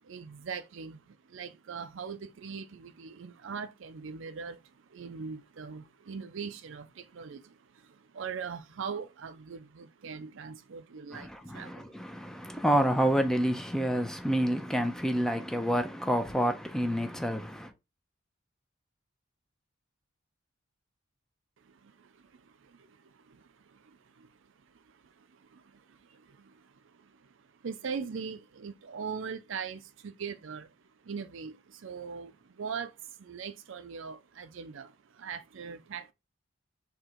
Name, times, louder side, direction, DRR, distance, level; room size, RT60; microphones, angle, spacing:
voice 1, 0.0-12.6 21.6-36.1, right 6 dB, 65° right, 0.5 m, -42 dB
voice 2, 11.1-17.7, equal, 5° left, 0.5 m, -28 dB
3.7 x 2.8 x 4.3 m
head